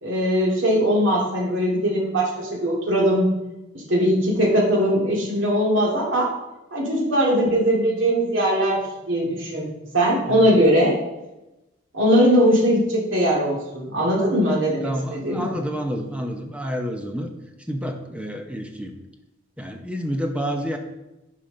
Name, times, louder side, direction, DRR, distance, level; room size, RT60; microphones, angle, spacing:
voice 1, 0.0-3.3 3.7-6.3 6.7-9.7 9.9-11.0 11.9-15.5, equal, 70° right, -3 dB, 2.2 m, -20 dB
voice 2, 14.8-17.3 17.7-19.0 19.6-20.8, equal, 5° right, 3 dB, 0.7 m, -29 dB
10.0 x 5.0 x 3.8 m, 0.97 s
head